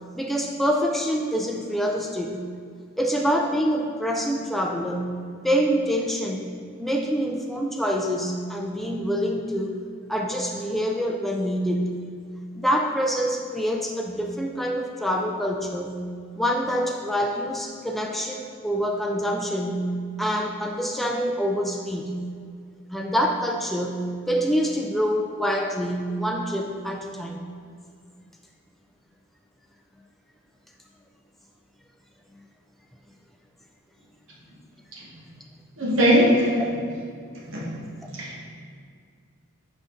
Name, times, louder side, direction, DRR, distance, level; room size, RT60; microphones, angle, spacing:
voice 1, 0.2-2.5 3.0-5.2 5.4-6.5 6.8-9.8 10.1-12.0 12.5-16.1 16.4-22.3 22.9-27.4 36.5-36.7, equal, ahead, 1 dB, 0.3 m, -26 dB
voice 2, 35.8-36.5 37.5-37.7 38.2-38.4, equal, 60° right, -5 dB, 1.4 m, -19 dB
6.1 x 5.1 x 3.8 m, 2.2 s
head